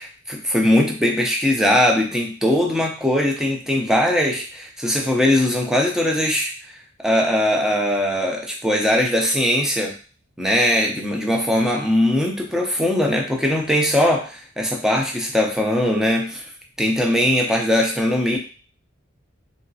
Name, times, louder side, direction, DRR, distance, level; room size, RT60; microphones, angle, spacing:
voice 1, 0.0-6.5 7.0-9.9 10.4-16.4 16.8-18.4, left 1 dB, 5° right, 0 dB, 0.6 m, -20 dB
3.0 x 2.8 x 2.7 m, 0.37 s
head